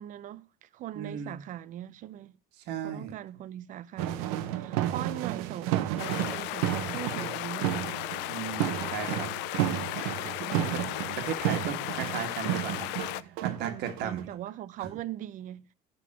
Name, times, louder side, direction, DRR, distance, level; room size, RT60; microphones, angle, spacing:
voice 1, 0.0-2.4 2.8-8.0 10.4-10.9 13.4-15.7, right 12 dB, 45° right, 0.5 m, -40 dB
voice 2, 0.9-1.4 2.6-3.1 8.3-9.3 10.4-10.8 11.2-12.9 13.2-14.3 14.8-14.9, right 8 dB, 65° right, 1.5 m, -36 dB
sound 1, 4.0-14.4, right 12 dB, 90° right, 0.8 m, -32 dB
sound 2, 6.0-13.2, left 18 dB, 70° left, 0.4 m, -35 dB
11.0 x 3.8 x 5.9 m
cardioid pair, 125°, 19 cm